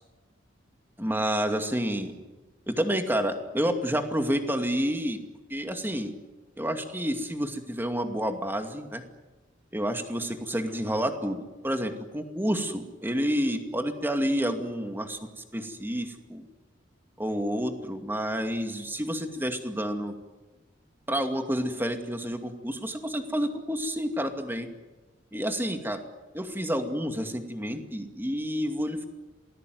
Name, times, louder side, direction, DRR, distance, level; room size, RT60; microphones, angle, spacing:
voice 1, 1.0-2.1 2.7-5.2 5.5-6.1 6.6-9.0 9.7-16.4 17.2-20.1 21.1-24.7 25.3-26.0 26.3-29.1, equal, 10° right, 6 dB, 2.4 m, -29 dB
27.0 x 19.5 x 9.5 m, 1.2 s
head